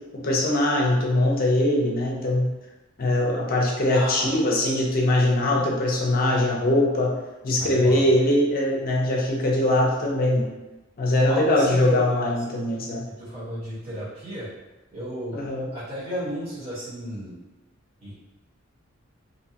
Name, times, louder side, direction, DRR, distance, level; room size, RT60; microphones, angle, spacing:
voice 1, 0.1-2.5 3.0-7.1 7.4-10.5 11.0-13.1 15.3-15.7, left 1 dB, 45° left, -1 dB, 0.5 m, -22 dB
voice 2, 3.9-4.3 5.2-5.6 7.6-8.1 11.3-12.0 12.4-12.6 13.1-14.5 14.9-15.4 15.7-17.4 18.0-18.1, right 1 dB, 30° right, -13 dB, 1.3 m, -33 dB
2.7 x 2.3 x 2.7 m, 1.1 s
head